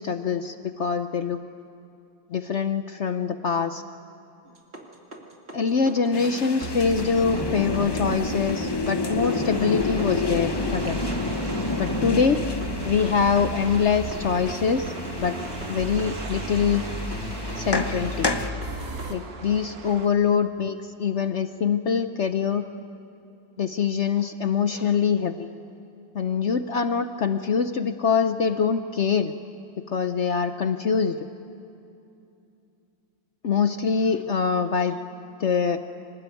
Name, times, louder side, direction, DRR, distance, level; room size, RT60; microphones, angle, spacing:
voice 1, 0.0-1.4 2.3-3.8 5.5-11.0 11.8-12.4 12.8-14.9 15.2-15.4 15.7-16.9 17.5-18.3 19.1-22.7 23.6-25.5 26.1-29.3 29.9-31.2 33.4-35.0 35.4-35.8, left 6 dB, 60° left, 9 dB, 0.7 m, -24 dB
sound 1, 4.5-19.1, right 1 dB, 35° right, 2.4 m, -35 dB
sound 2, 6.1-18.5, left 3 dB, 25° left, 0.5 m, -30 dB
sound 3, 9.2-20.1, right 4 dB, 50° right, 1.8 m, -41 dB
26.0 x 19.5 x 9.1 m, 2.7 s
omnidirectional pair, 2.0 m